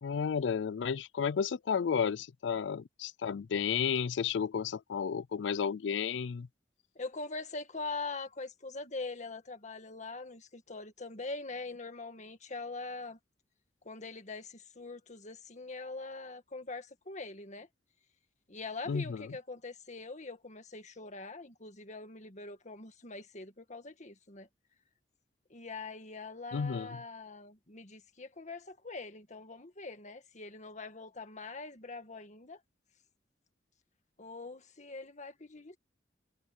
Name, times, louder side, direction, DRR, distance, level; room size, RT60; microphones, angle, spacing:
voice 1, 0.0-6.5 18.9-19.3 26.5-27.0, left 6 dB, 75° left, 0.4 m, -32 dB
voice 2, 7.0-13.2 13.9-17.7 18.5-24.5 25.5-32.6 34.2-35.8, left 3 dB, 40° left, 2.0 m, -43 dB
head